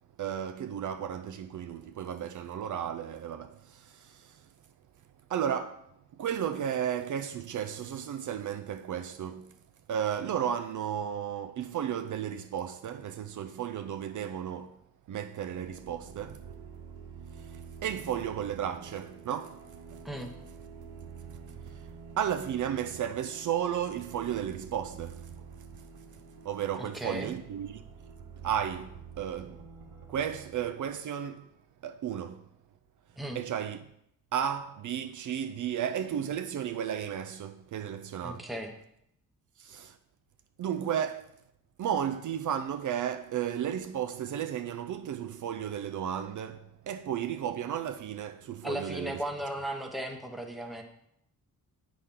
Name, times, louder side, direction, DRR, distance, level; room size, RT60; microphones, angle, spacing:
voice 1, 0.2-4.5 5.3-9.6 9.9-14.8 15.1-16.5 17.3-20.0 21.7-21.9 22.2-25.5 26.4-27.8 28.4-29.6 30.1-31.5 31.8-32.4 33.3-33.8 34.3-38.5 39.6-40.0 40.6-41.3 41.8-49.2, right 9 dB, 60° right, 0.4 m, -34 dB
sound 1, 15.5-30.9, right 6 dB, 80° right, 1.0 m, -48 dB
voice 2, 26.8-27.3 33.2-33.4 38.2-38.7 48.6-50.8, equal, ahead, 0.8 m, -36 dB
8.1 x 5.8 x 3.7 m
wide cardioid pair, 140°, 36 cm